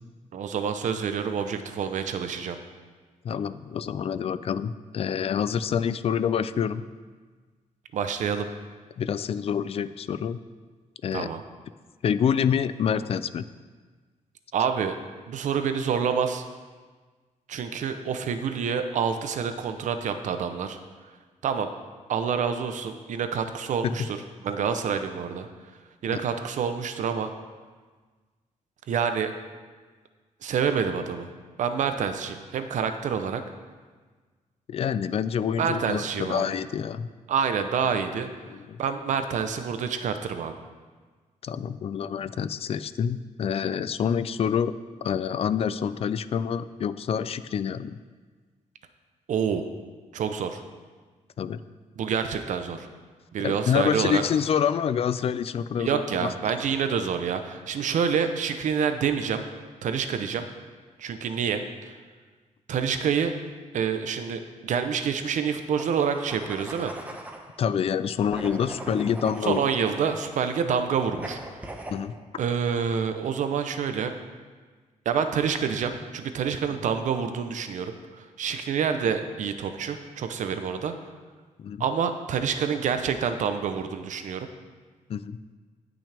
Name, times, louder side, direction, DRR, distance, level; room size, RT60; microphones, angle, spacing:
voice 1, 0.3-2.6 7.9-8.5 11.1-11.4 14.5-15.0 15.3-16.4 17.5-20.8 21.4-21.7 22.1-24.2 24.4-25.5 26.0-27.3 28.9-29.3 30.4-31.3 31.6-33.4 35.6-36.5 37.3-38.3 38.8-40.5 49.3-49.6 50.1-50.6 52.0-52.9 53.3-54.2 55.8-59.4 59.8-60.5 61.0-62.0 62.7-63.3 63.7-66.9 69.4-71.4 72.4-74.1 75.0-80.9 81.8-84.5, right 7 dB, 70° right, 8 dB, 0.7 m, -27 dB
voice 2, 3.2-6.8 9.0-10.4 11.0-11.3 12.0-13.4 23.8-23.9 34.7-37.1 38.4-38.8 41.4-44.7 45.0-48.0 51.4-51.6 53.4-56.3 67.6-69.7 71.9-72.1 81.6-81.8 85.1-85.4, left 8 dB, 50° left, 13 dB, 0.4 m, -27 dB
sound 1, 65.7-67.5 68.3-70.5 71.2-72.0, right 1 dB, 10° right, 1.0 m, -39 dB
18.5 x 6.2 x 3.4 m, 1.4 s
wide cardioid pair, 140°, 13 cm